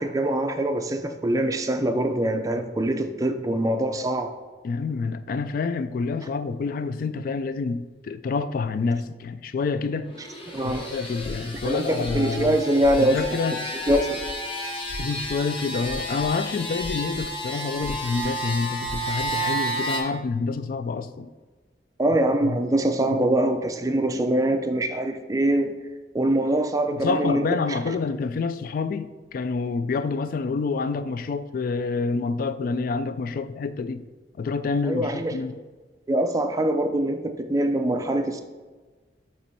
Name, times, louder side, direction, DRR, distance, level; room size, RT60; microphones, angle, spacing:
voice 1, 0.0-4.3 10.5-10.9 11.6-13.2 13.9-14.2 22.0-25.7 26.1-28.0 34.8-35.3 36.1-38.4, right 1 dB, 20° right, 0.4 m, -23 dB
voice 2, 4.6-10.1 10.6-12.6 13.0-13.6 15.0-21.3 22.4-22.6 23.2-23.3 26.9-34.0 34.4-35.6, left 4 dB, 50° left, 0.3 m, -28 dB
sound 1, 10.0-20.0, right 1 dB, 30° left, 0.9 m, -32 dB
sound 2, 10.8-11.7 12.0-12.5 12.8-13.3 13.7-14.3 14.8-15.5 15.8-16.3 16.8-17.3 17.5-18.3 18.8-19.3, left 1 dB, 80° left, 0.6 m, -38 dB
6.9 x 3.1 x 4.5 m
head